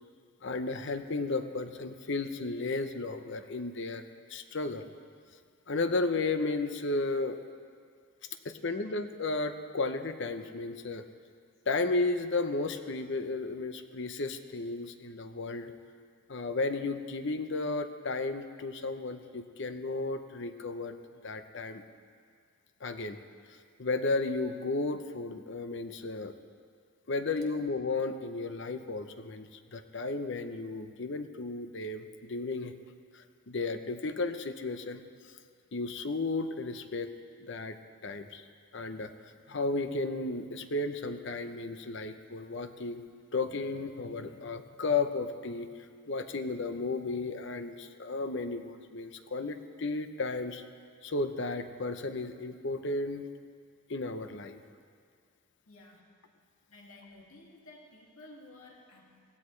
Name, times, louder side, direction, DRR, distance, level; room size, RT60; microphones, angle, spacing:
voice 1, 0.4-4.0 4.3-4.8 5.7-7.4 8.4-11.0 11.7-15.7 16.3-21.0 21.2-21.8 22.8-23.2 23.5-26.3 27.1-32.7 33.1-35.0 35.7-37.1 37.4-37.8 38.0-38.4 38.7-43.0 43.3-50.6 51.0-53.3 53.9-54.6, left 3 dB, 55° left, 9 dB, 0.7 m, -34 dB
voice 2, 55.7-56.1 56.7-59.2, left 2 dB, 85° left, -1 dB, 2.2 m, -53 dB
17.0 x 16.5 x 3.3 m, 2.1 s
head